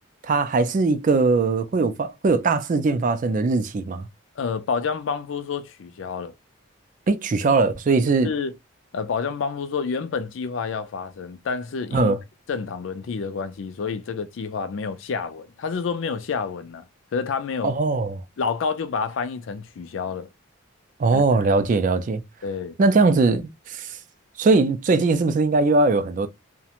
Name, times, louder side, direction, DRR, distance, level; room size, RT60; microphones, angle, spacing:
voice 1, 0.2-4.1 7.1-8.3 11.9-12.2 17.6-18.2 21.0-22.2 22.8-23.9 24.4-26.3, right 3 dB, 40° right, 0.3 m, -20 dB
voice 2, 4.4-6.3 8.2-8.5 8.9-12.2 12.5-17.7 18.4-20.3 21.1-21.4 22.4-22.8, left 5 dB, 70° left, 0.4 m, -29 dB
2.4 x 2.1 x 2.8 m
head